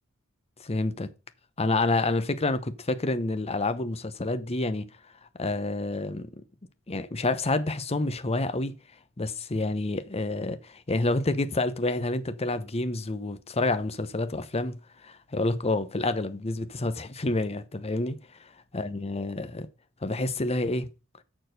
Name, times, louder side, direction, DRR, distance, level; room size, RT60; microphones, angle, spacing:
voice 1, 0.6-1.1 1.6-4.9 5.4-6.4 6.9-8.8 9.2-19.7 20.0-20.9, left 2 dB, 30° left, 0.8 m, -28 dB
6.8 x 6.2 x 6.5 m
head